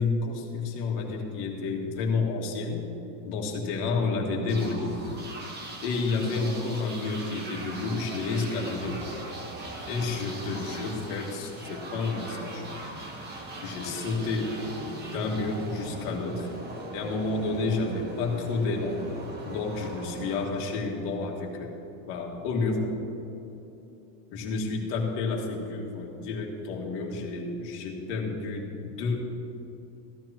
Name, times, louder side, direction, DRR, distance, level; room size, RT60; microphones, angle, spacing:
voice 1, 0.0-2.8 3.2-4.9 5.8-9.3 9.9-12.7 13.6-14.5 14.9-16.5 16.9-19.0 19.5-23.0 24.3-29.2, left 3 dB, 50° left, 0 dB, 2.0 m, -30 dB
sound 1, 4.5-21.2, right 2 dB, 20° right, 1.1 m, -40 dB
15.0 x 13.0 x 2.9 m, 2.9 s
supercardioid pair, 165°, 48 cm